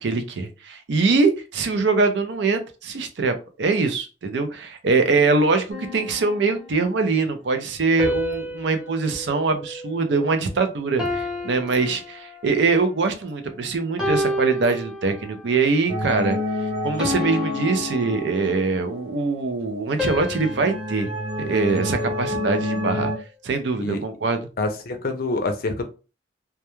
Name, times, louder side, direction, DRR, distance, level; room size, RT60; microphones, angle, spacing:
voice 1, 0.0-16.4 16.8-21.1 21.4-23.1 23.4-24.4, right 4 dB, 70° right, 8 dB, 0.5 m, -23 dB
sound 1, 5.7-7.0 8.0-10.5 11.0-12.7 13.3-13.5 14.0-15.5 16.0-16.3 17.0-18.9 20.0-22.4, left 1 dB, 5° right, 0.8 m, -31 dB
sound 2, 15.9-19.0 20.0-23.2, left 1 dB, 25° right, 0.9 m, -29 dB
voice 2, 24.6-25.9, left 2 dB, 50° left, 6 dB, 0.4 m, -26 dB
2.2 x 2.2 x 2.9 m, 0.32 s
head